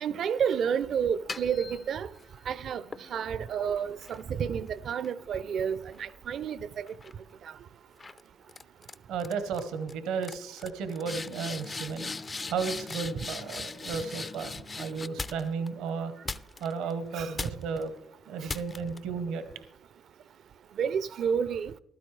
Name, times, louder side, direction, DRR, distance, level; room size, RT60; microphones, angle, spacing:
voice 1, 0.0-2.1 2.5-2.8 3.1-6.9 13.1-13.3 17.1-17.3 20.8-21.7, right 7 dB, 65° right, 0.5 m, -30 dB
sound 1, 1.1-2.3 2.9-6.5 6.9-7.3 8.0-8.2 8.5-8.9 9.2-9.6 9.9-10.0 10.2-15.7 16.3-16.9 17.4-17.8 18.5-19.0, left 3 dB, 35° left, 0.5 m, -40 dB
voice 2, 9.1-12.1 12.5-16.1 16.6-17.9 18.3-19.4, right 5 dB, 85° right, 0.9 m, -34 dB
14.5 x 12.5 x 3.3 m
supercardioid pair, 60°, 0 cm